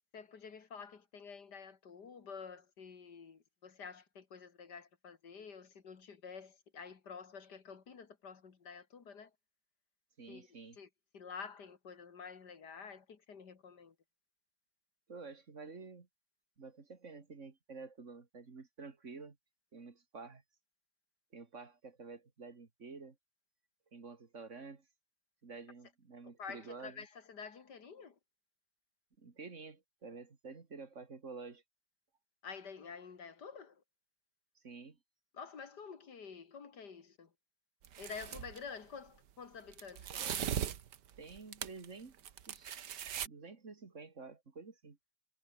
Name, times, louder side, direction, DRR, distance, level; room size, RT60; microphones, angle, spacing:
voice 1, 0.1-9.3 10.3-10.5 10.8-10.9 11.1-13.9 26.4-28.2 32.4-33.8 35.3-37.3 38.0-40.3, left 6 dB, 55° left, 2.5 m, -49 dB
voice 2, 10.2-10.8 15.1-16.1 16.6-19.4 19.7-20.4 21.3-23.2 23.9-24.9 25.4-27.0 29.2-31.6 34.6-35.0 40.2-40.3 41.2-42.2 42.4-42.9 43.2-45.0, right 4 dB, 40° right, 2.5 m, -50 dB
sound 1, 37.8-38.6 39.7-41.9 42.2-43.3, right 9 dB, 60° right, 1.7 m, -39 dB
omnidirectional pair, 2.1 m